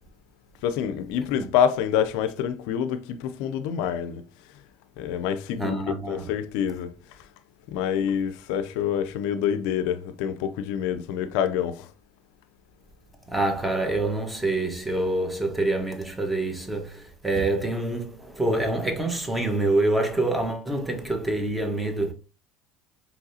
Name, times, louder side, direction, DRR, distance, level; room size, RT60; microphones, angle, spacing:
voice 1, 0.6-4.2 5.0-6.9 7.7-11.9, left 9 dB, 70° left, 0.4 m, -27 dB
voice 2, 5.6-6.3 13.3-22.1, right 2 dB, 10° right, 1.3 m, -26 dB
4.6 x 3.4 x 2.7 m
hypercardioid pair, 80°, 0 cm